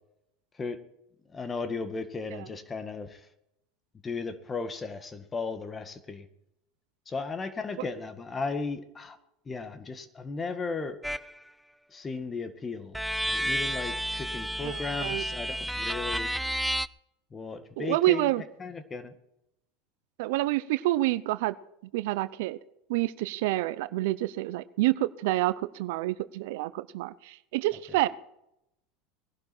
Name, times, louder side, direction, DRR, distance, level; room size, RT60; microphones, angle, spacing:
voice 1, 1.3-3.3 4.0-6.3 7.1-9.2 9.5-11.0 11.9-13.0 13.3-16.3 17.3-18.3 18.6-19.1, left 4 dB, 25° left, 10 dB, 1.8 m, -35 dB
sound 1, 11.0-11.3 12.9-16.9, equal, 5° right, 0.4 m, -31 dB
voice 2, 14.6-15.2 17.8-18.4 20.2-21.5 21.9-22.6 22.9-28.1, right 17 dB, 70° right, 15 dB, 0.7 m, -28 dB
20.5 x 11.5 x 4.5 m, 0.82 s
hypercardioid pair, 100°, 0 cm